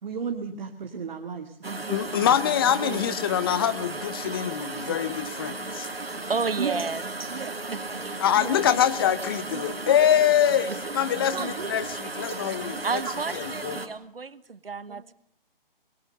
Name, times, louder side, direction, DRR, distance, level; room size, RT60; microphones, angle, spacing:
voice 1, 0.0-3.2 4.9-5.0 6.6-6.8 7.3-7.6 8.3-8.7 9.5-9.8 11.3-11.7 14.9-15.0, right 6 dB, 50° right, 4 dB, 2.3 m, -35 dB
sound 1, 1.6-13.9, right 2 dB, 90° right, 3.0 m, -35 dB
voice 2, 1.9-5.9 8.2-13.0 13.3-13.8, left 10 dB, 25° left, 15 dB, 0.9 m, -24 dB
voice 3, 6.3-7.0 7.7-8.2 9.8-10.0 10.7-10.9 12.5-12.6 12.8-15.1, right 4 dB, 75° right, 17 dB, 1.3 m, -32 dB
25.5 x 21.5 x 6.7 m, 0.65 s
figure-of-eight pair, 145°, 29 cm